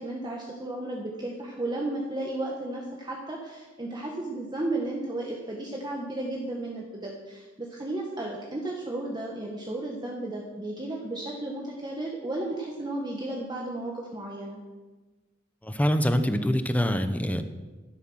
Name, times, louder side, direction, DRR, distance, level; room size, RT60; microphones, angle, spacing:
voice 1, 0.0-14.6, right 2 dB, 20° right, -2 dB, 1.4 m, -34 dB
voice 2, 15.6-17.4, equal, 10° left, 9 dB, 0.8 m, -25 dB
11.5 x 11.0 x 6.3 m, 1.3 s
head